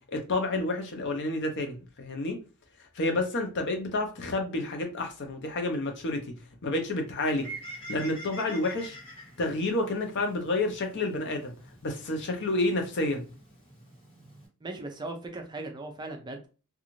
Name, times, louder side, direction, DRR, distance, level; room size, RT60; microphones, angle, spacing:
voice 1, 0.1-2.4 3.0-6.3 6.6-7.5 7.9-9.0 9.4-11.5 11.8-13.2, left 2 dB, 55° left, 0.6 m, -29 dB
Bird, 7.2-14.5, right 2 dB, 25° left, 1.4 m, -47 dB
voice 2, 14.6-16.5, right 2 dB, 20° right, 0.4 m, -38 dB
2.5 x 2.3 x 3.0 m
head